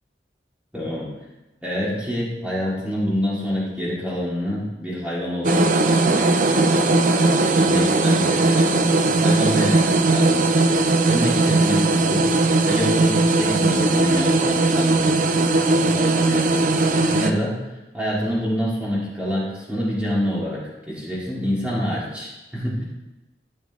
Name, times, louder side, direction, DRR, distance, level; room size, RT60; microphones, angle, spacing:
voice 1, 0.7-1.1 1.6-12.3 12.7-17.6 17.9-22.8, equal, 5° right, -7 dB, 2.6 m, -27 dB
sound 1, 5.4-17.3, right 2 dB, 45° right, 0.5 m, -19 dB
13.5 x 7.0 x 3.1 m, 1.1 s
head